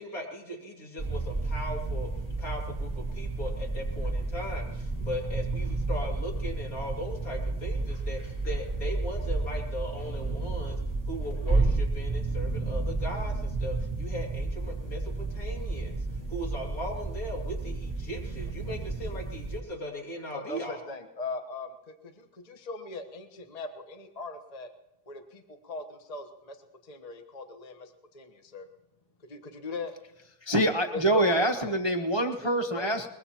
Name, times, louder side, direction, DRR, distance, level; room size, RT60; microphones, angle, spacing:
voice 1, 0.0-2.1 2.4-10.8 11.1-16.0 16.3-20.9, left 1 dB, 65° left, -1 dB, 3.2 m, -38 dB
sound 1, 1.0-19.6, right 3 dB, 10° left, 2.9 m, -31 dB
voice 2, 3.9-4.3 4.9-5.1 18.7-18.8 20.3-24.7 25.1-26.6 26.8-28.7 29.3-29.9 30.9-31.3 31.6-31.7 32.4-33.1, left 3 dB, 30° left, 5 dB, 1.1 m, -40 dB
voice 3, 30.4-33.1, right 1 dB, 20° right, 5 dB, 0.8 m, -25 dB
22.5 x 21.5 x 2.9 m, 0.94 s
omnidirectional pair, 1.7 m